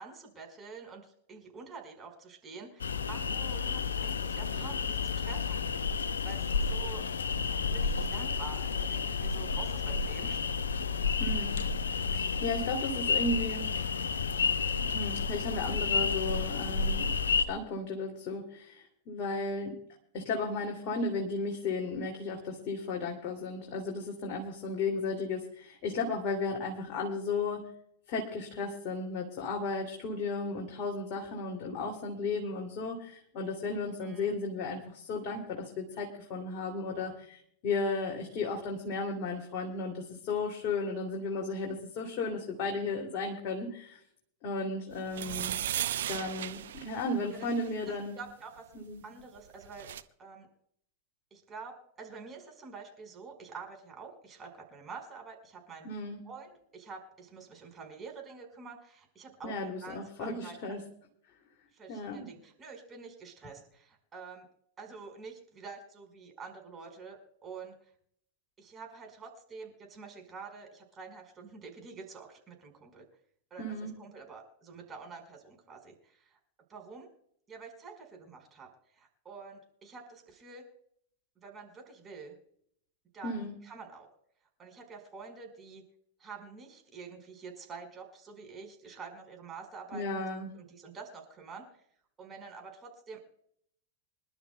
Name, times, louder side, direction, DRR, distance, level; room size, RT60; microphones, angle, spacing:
voice 1, 0.0-5.7 6.2-7.1 7.5-10.4 34.0-34.4 45.1-45.4 47.3-47.5 47.9-48.7 49.0-49.9 50.2-50.5 51.3-55.9 56.2-59.5 59.8-60.8 61.7-64.5 64.8-67.7 68.6-73.1 73.5-76.4 76.7-77.1 77.5-80.6 81.4-82.4 83.1-84.1 84.6-85.8 86.2-90.3 90.5-91.6 92.2-93.2, right 5 dB, 20° right, 3 dB, 5.0 m, -47 dB
sound 1, 2.8-17.4, left 5 dB, 70° left, 0.8 m, -31 dB
voice 2, 11.2-11.6 12.0-13.8 14.8-17.1 17.5-19.8 20.1-27.7 28.1-44.0 44.4-45.6 46.1-48.2 48.7-49.0 55.8-56.2 59.4-60.8 61.9-62.3 73.6-73.9 83.2-83.5 89.9-90.5, left 3 dB, 40° left, 1 dB, 2.7 m, -34 dB
sound 2, 45.1-47.7 49.4-49.5 49.6-50.0, right 11 dB, 60° right, 0.7 m, -36 dB
26.5 x 12.0 x 2.3 m, 0.69 s
figure-of-eight pair, 90°, 0 cm